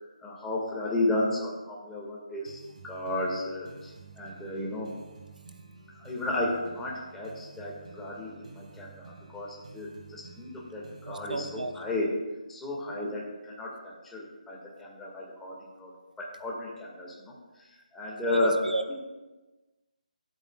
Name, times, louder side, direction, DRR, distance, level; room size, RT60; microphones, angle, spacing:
voice 1, 0.2-4.9 5.9-12.1 12.5-17.7 17.9-18.6, left 2 dB, 5° left, -4 dB, 1.9 m, -33 dB
sound 1, 2.5-12.0, right 4 dB, 60° right, 1.9 m, -51 dB
voice 2, 11.1-11.8 12.9-13.0 18.2-18.9, right 2 dB, 85° right, 8 dB, 1.0 m, -32 dB
24.0 x 8.3 x 2.4 m, 1.2 s
figure-of-eight pair, 160°, 4 cm